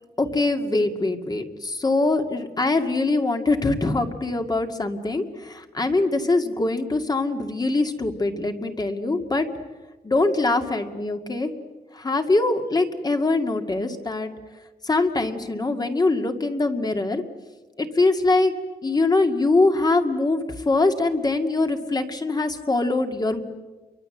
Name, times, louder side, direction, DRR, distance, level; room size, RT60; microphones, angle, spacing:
voice 1, 0.2-9.5 10.0-11.5 11.9-14.3 14.8-17.2 17.8-18.5 18.8-23.4, left 2 dB, 25° left, 6 dB, 2.1 m, -23 dB
29.5 x 24.0 x 7.8 m, 1.3 s
wide cardioid pair, 130°, 17 cm